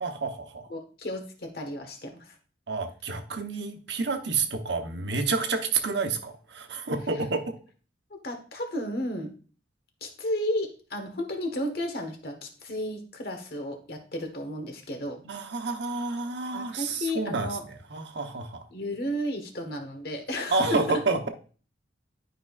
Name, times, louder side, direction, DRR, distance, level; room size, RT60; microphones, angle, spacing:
voice 1, 0.0-0.7 2.7-7.4 15.2-17.5 17.9-18.6 20.5-21.3, right 4 dB, 75° right, 6 dB, 1.0 m, -29 dB
voice 2, 0.7-2.4 8.1-9.3 10.0-15.2 16.5-17.6 18.7-21.0, left 1 dB, 55° left, 5 dB, 1.3 m, -33 dB
11.0 x 5.1 x 2.4 m, 0.39 s
head